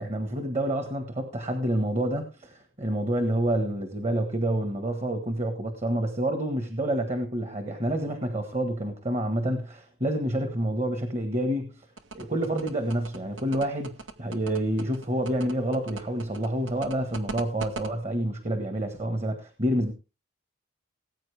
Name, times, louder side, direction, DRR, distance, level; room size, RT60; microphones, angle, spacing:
voice 1, 0.0-11.7 12.1-19.9, right 1 dB, 35° right, 7 dB, 1.5 m, -28 dB
sound 1, 12.0-17.9, right 3 dB, 65° right, 1.3 m, -38 dB
18.5 x 8.7 x 3.5 m, 0.31 s
head